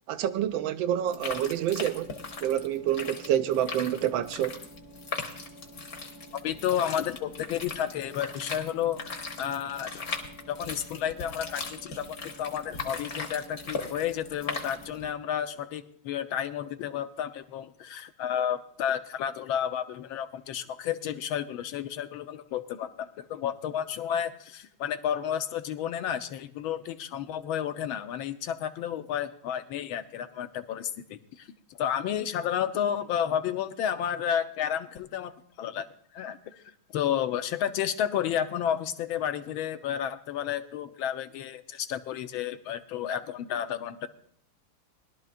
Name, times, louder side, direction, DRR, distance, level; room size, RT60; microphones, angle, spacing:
voice 1, 0.1-4.6, right 11 dB, 75° right, 1.3 m, -28 dB
sound 1, 1.1-15.1, left 4 dB, 45° left, 1.8 m, -39 dB
voice 2, 6.4-10.0 10.5-31.5 31.8-35.9 36.1-36.6 36.9-44.1, left 9 dB, 75° left, 1.5 m, -31 dB
21.5 x 12.0 x 2.5 m
omnidirectional pair, 2.3 m